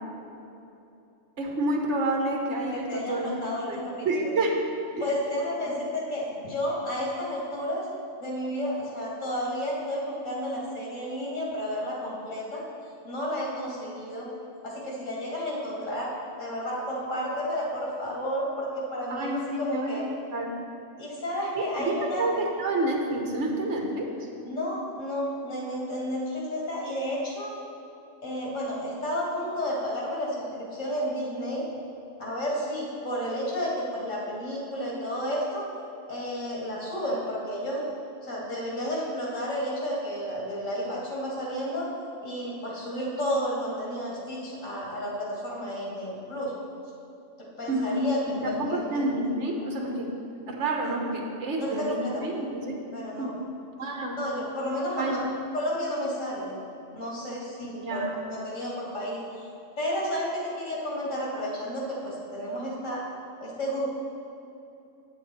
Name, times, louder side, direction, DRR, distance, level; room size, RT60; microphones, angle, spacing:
voice 1, 1.4-3.3 3.7-3.8 4.0-4.6 5.0-5.1 19.1-20.0 20.3-20.5 21.5-24.1 47.7-48.0 48.3-50.1 50.5-52.8 53.2-53.4 53.8-54.2 55.0-55.2 57.8-58.1, right 2 dB, 65° right, 0 dB, 1.4 m, -29 dB
voice 2, 2.7-4.3 5.0-7.8 8.2-12.6 13.0-14.3 14.6-16.1 16.4-20.0 21.0-22.3 24.4-27.5 28.2-31.6 32.2-35.6 36.1-37.9 38.2-41.9 42.2-46.5 47.6-48.8 50.8-51.0 51.6-52.3 52.9-53.3 54.2-55.2 55.5-56.6 56.9-59.2 59.8-63.0 63.4-63.8, equal, 85° left, -5 dB, 2.4 m, -31 dB
8.6 x 7.6 x 4.3 m, 2.8 s
omnidirectional pair, 1.3 m